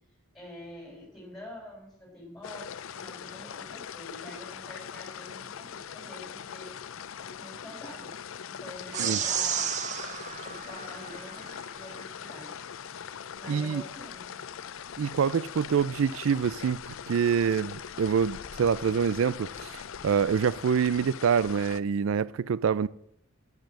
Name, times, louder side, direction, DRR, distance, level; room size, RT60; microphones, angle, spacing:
voice 1, 0.3-6.7 7.2-8.1 8.5-9.9 10.4-12.5 13.4-14.3, left 1 dB, ahead, 6.5 m, -46 dB
sound 1, 2.4-21.8, left 8 dB, 90° left, 0.5 m, -41 dB
sound 2, 8.9-11.6, right 8 dB, 35° right, 0.8 m, -32 dB
voice 2, 13.5-13.8 15.0-22.9, right 7 dB, 90° right, 0.4 m, -26 dB
10.5 x 10.5 x 7.6 m
head